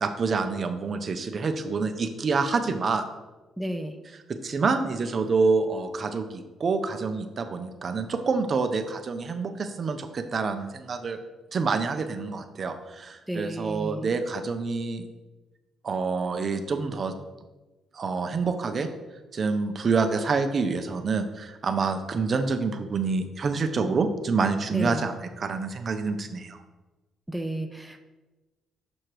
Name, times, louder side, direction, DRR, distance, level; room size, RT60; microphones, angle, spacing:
voice 1, 0.0-3.0 4.3-11.2 11.5-15.0 15.8-17.1 17.9-18.9 19.3-26.6, right 4 dB, 45° right, 7 dB, 0.6 m, -27 dB
voice 2, 3.6-4.0 13.3-14.2 24.7-25.1 27.3-28.0, right 1 dB, 5° right, 5 dB, 0.6 m, -32 dB
6.3 x 4.4 x 4.8 m, 1.1 s
cardioid pair, 90°, 0 cm